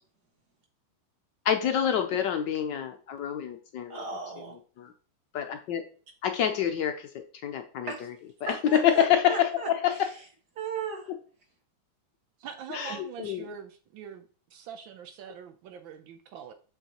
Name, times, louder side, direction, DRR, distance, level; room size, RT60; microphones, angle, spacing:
voice 1, 1.4-4.0 4.8-4.9 5.3-5.8 6.2-7.1 7.4-7.9 8.4-10.1 12.7-13.5, left 9 dB, 70° left, 5 dB, 1.1 m, -27 dB
voice 2, 3.9-4.5 7.9-8.1 8.5-9.7 10.6-11.1 12.9-13.0, right 4 dB, 50° right, 0 dB, 2.0 m, -36 dB
voice 3, 12.4-16.5, right 7 dB, 75° right, 7 dB, 1.3 m, -43 dB
8.0 x 4.6 x 2.9 m, 0.40 s
omnidirectional pair, 2.3 m